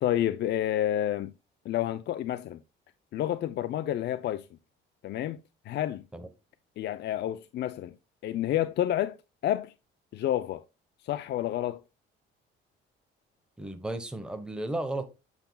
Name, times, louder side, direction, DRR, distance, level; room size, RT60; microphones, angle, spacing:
voice 1, 0.0-1.3 1.7-2.6 3.1-4.5 5.0-5.4 5.6-6.0 6.8-7.9 8.2-9.1 9.4-9.7 10.1-10.6 11.0-11.8, left 12 dB, 55° left, 0.5 m, -29 dB
voice 2, 13.6-15.1, right 1 dB, 5° right, 1.0 m, -34 dB
8.1 x 6.8 x 2.3 m
cardioid pair, 120°, 21 cm